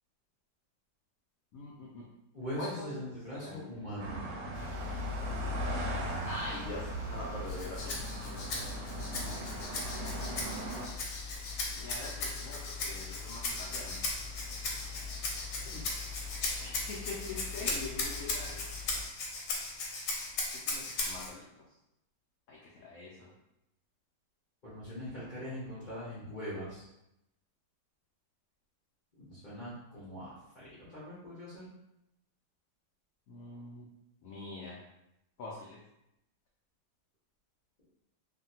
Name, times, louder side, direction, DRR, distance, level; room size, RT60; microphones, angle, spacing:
voice 1, 1.5-2.0 2.6-2.9 3.3-4.9 6.2-8.8 11.8-14.0 16.6-18.6 20.7-21.5 22.5-23.3 33.3-33.9 34.2-34.8 35.4-35.8, left 2 dB, 85° left, -4 dB, 0.7 m, -44 dB
voice 2, 2.3-4.2 24.6-26.8 29.2-31.7, equal, 50° left, -11 dB, 0.5 m, -41 dB
sound 1, 4.0-10.9, right 1 dB, 75° right, 1.1 m, -38 dB
sound 2, 4.5-19.0, left 6 dB, 25° right, 0.4 m, -44 dB
Rattle (instrument), 7.5-21.3, left 3 dB, 65° left, 1.0 m, -38 dB
2.7 x 2.6 x 2.7 m, 0.86 s
omnidirectional pair, 2.0 m